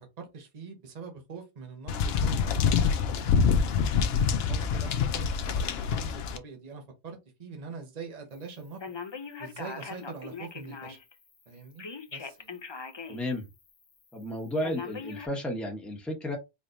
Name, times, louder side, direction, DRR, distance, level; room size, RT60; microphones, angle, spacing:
voice 1, 0.0-3.1 4.3-8.8 9.4-11.0 11.5-11.8 12.1-12.6, right 5 dB, 40° right, 1.0 m, -44 dB
sound 1, 1.9-6.4, left 6 dB, 70° left, 0.8 m, -26 dB
Telephone, 8.8-11.1 11.8-13.3 13.7-13.8 14.6-15.3, left 5 dB, 35° left, 0.5 m, -40 dB
voice 2, 13.1-13.5 14.1-16.4, left 1 dB, ahead, 0.9 m, -33 dB
4.2 x 3.1 x 2.6 m
omnidirectional pair, 1.1 m